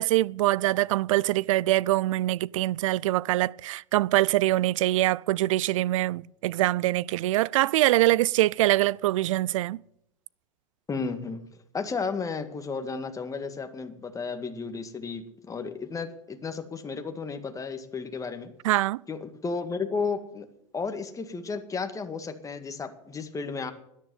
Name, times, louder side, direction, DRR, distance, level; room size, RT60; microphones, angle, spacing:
voice 1, 0.0-9.8 18.6-19.0, right 16 dB, 75° right, 0.5 m, -24 dB
voice 2, 10.9-11.4 11.7-18.5 19.1-20.5 20.7-23.7, left 4 dB, 20° left, 1.9 m, -33 dB
13.0 x 10.5 x 7.9 m
hypercardioid pair, 95°, 17 cm